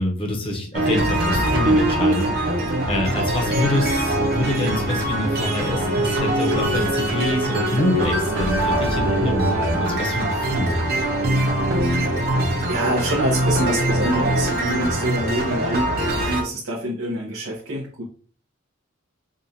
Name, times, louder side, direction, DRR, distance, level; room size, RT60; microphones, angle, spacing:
voice 1, 0.0-10.9, left 1 dB, 25° left, 2 dB, 0.8 m, -26 dB
sound 1, 0.7-16.4, right 1 dB, 50° right, 0.8 m, -22 dB
voice 2, 11.7-12.1 12.7-18.0, right 1 dB, 90° right, -3 dB, 0.9 m, -26 dB
5.0 x 2.4 x 2.7 m, 0.43 s
head